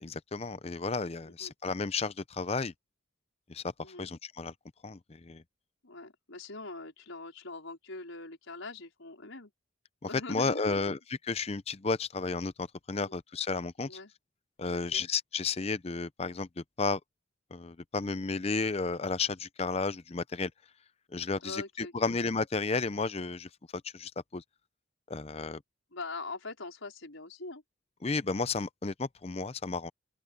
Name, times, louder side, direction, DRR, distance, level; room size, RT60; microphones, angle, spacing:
voice 1, 0.0-2.7 3.5-3.7 4.0-4.5 4.8-5.4 10.3-11.0 11.2-13.9 14.6-17.0 17.5-20.5 21.1-24.4 25.1-25.6 28.0-29.9, left 4 dB, 30° left, 0.5 m, -33 dB
voice 2, 5.8-9.5 10.1-10.8 13.0-13.2 13.9-14.1 14.7-15.0 21.4-22.1 25.9-27.6, left 3 dB, 75° left, 4.8 m, -43 dB
open air
head